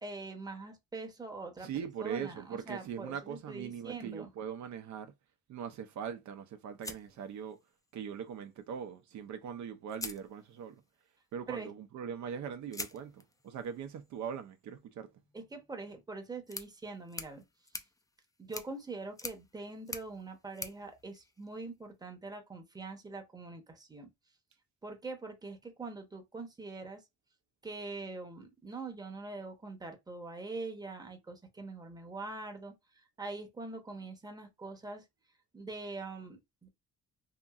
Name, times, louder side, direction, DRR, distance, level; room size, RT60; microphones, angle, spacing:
voice 1, 0.0-1.7 2.0-4.3 11.5-11.7 15.3-17.4 18.4-24.1 24.8-27.0 27.6-35.0 35.5-36.7, right 3 dB, 15° right, 0.8 m, -43 dB
voice 2, 1.6-5.1 5.5-7.6 7.9-10.8 11.3-15.1, right 7 dB, 70° right, 0.6 m, -41 dB
sound 1, 6.8-7.9 9.3-9.4 9.9-10.9 12.7-21.9, left 3 dB, 10° left, 0.4 m, -47 dB
2.9 x 2.6 x 2.3 m
cardioid pair, 90°, 30 cm